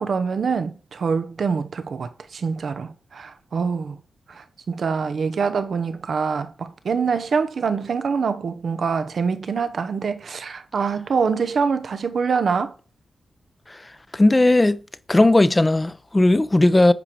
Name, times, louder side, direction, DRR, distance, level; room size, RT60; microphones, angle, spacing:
voice 1, 0.0-4.0 4.3-12.7, right 5 dB, 65° right, 0.8 m, -25 dB
voice 2, 14.1-14.8 15.1-16.9, left 2 dB, 25° left, 0.8 m, -16 dB
9.3 x 4.9 x 4.7 m
supercardioid pair, 45°, 0 cm